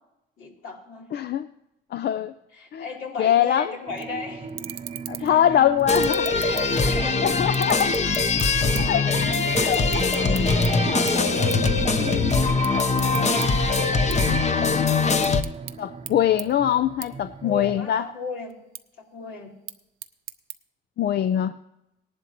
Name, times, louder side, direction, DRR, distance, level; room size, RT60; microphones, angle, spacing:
voice 1, 0.4-1.1 2.5-4.5 5.2-5.5 6.1-7.2 12.5-13.6 17.4-18.6 19.1-19.5, left 4 dB, 85° left, -2 dB, 3.4 m, -35 dB
voice 2, 1.1-1.5 1.9-2.3 2.7-2.9 3.2-3.7 5.1-6.3 6.8-6.9 7.2-7.9 8.8-9.3 9.6-10.1 10.7-11.0 12.0-12.4 14.1-14.3 15.8-18.0 21.0-21.6, left 10 dB, 55° left, 11 dB, 0.5 m, -23 dB
sound 1, 3.9-17.8, right 6 dB, 30° right, 0.8 m, -36 dB
sound 2, 4.0-4.1 4.5-5.4 5.8-7.1 7.4-9.0 9.3-10.7 11.1-11.2 11.5-11.7 12.1-13.5 13.8-14.7 15.1-15.7 16.1-16.2 16.4-16.5 17.0-17.1 17.5-18.0 18.5-18.8 19.5-20.6, right 12 dB, 80° right, 0.7 m, -36 dB
sound 3, 5.9-15.4, left 4 dB, 35° left, 0.9 m, -22 dB
18.0 x 11.0 x 3.0 m, 0.88 s
cardioid pair, 90°, 20 cm